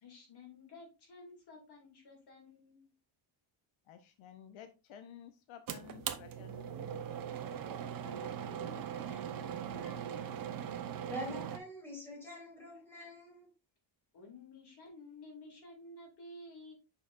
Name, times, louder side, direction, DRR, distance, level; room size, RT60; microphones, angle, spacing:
voice 1, 0.0-2.9 8.0-10.5 14.1-16.7, left 1 dB, 55° left, 2.5 m, -52 dB
voice 2, 3.9-7.1, left 9 dB, 80° left, 0.8 m, -53 dB
sound 1, 5.7-11.6, right 9 dB, 45° right, 0.7 m, -40 dB
voice 3, 11.1-13.5, equal, 5° left, 3.1 m, -44 dB
7.0 x 5.8 x 2.5 m
cardioid pair, 175°, 48 cm